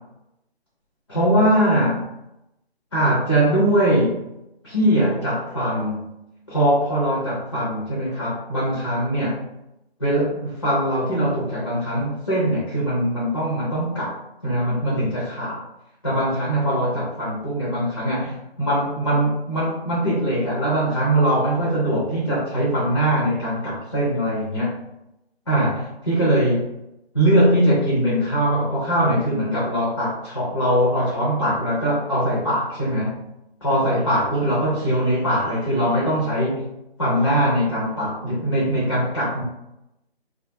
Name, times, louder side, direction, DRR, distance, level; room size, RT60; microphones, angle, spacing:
voice 1, 1.1-2.1 2.9-4.2 4.6-6.1 6.5-9.5 10.0-14.2 14.4-15.6 16.0-24.7 25.5-26.7 27.1-33.2 33.6-36.7 37.0-39.4, right 1 dB, 30° left, -7 dB, 0.5 m, -21 dB
2.2 x 2.2 x 2.7 m, 0.88 s
figure-of-eight pair, 165°, 32 cm